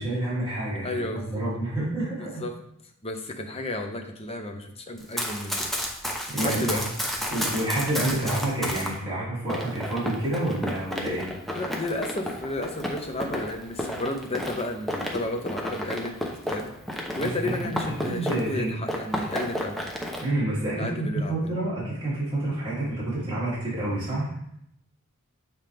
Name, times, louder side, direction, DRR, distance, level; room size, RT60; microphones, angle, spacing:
voice 1, 0.0-2.4 6.3-6.8 7.3-11.3 17.2-17.5 18.0-18.7 20.2-24.3, right 1 dB, 20° right, -9 dB, 2.8 m, -28 dB
voice 2, 0.8-1.4 2.2-2.5 3.0-5.7 6.4-6.8 11.5-16.2 16.5-16.7 17.2-19.8 20.7-21.5, left 1 dB, 30° left, 4 dB, 0.7 m, -32 dB
Run, 5.0-8.9 9.5-18.6 18.9-20.2, equal, ahead, 0.8 m, -32 dB
7.7 x 4.4 x 3.4 m, 0.75 s
head